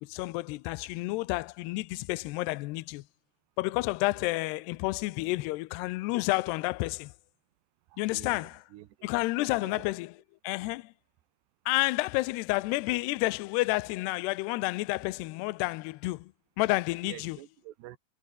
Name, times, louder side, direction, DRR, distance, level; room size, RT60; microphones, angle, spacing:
voice 1, 0.0-3.0 3.6-7.1 8.0-8.6 9.0-10.1 10.4-10.9 11.7-16.3 16.6-17.4, left 21 dB, 80° left, 2.7 m, -30 dB
voice 2, 7.9-9.1 9.5-9.9 17.0-18.0, right 14 dB, 85° right, 3.3 m, -48 dB
omnidirectional pair, 4.9 m